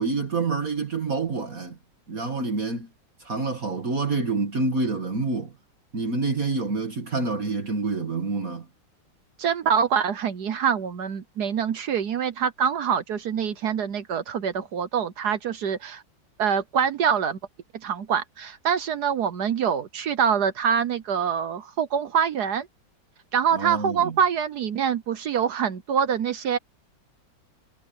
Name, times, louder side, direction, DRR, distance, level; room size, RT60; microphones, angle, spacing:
voice 1, 0.0-1.8 2.1-2.9 3.2-5.5 5.9-8.7 23.5-24.1, right 3 dB, 45° right, 2.4 m, -27 dB
voice 2, 9.4-16.0 16.4-17.4 17.8-22.7 23.3-26.6, right 7 dB, 60° right, 1.3 m, -25 dB
omnidirectional pair, 2.1 m